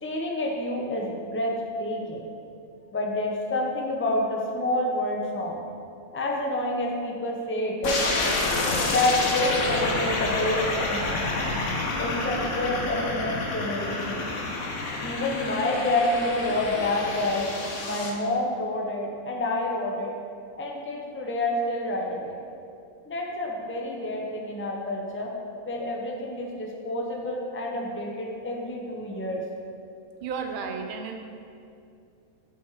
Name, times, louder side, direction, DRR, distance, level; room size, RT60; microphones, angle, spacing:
voice 1, 0.0-2.3 2.9-5.6 6.1-8.0 8.6-11.2 12.0-14.2 15.0-17.5 17.8-20.1 20.6-22.4 23.1-25.3 25.7-29.4, left 1 dB, 15° left, 0 dB, 0.5 m, -28 dB
sound 1, 7.8-18.1, left 3 dB, 60° left, 1.2 m, -28 dB
voice 2, 30.2-31.2, right 5 dB, 50° right, 4 dB, 0.6 m, -32 dB
8.1 x 4.6 x 4.8 m, 2.6 s
omnidirectional pair, 1.5 m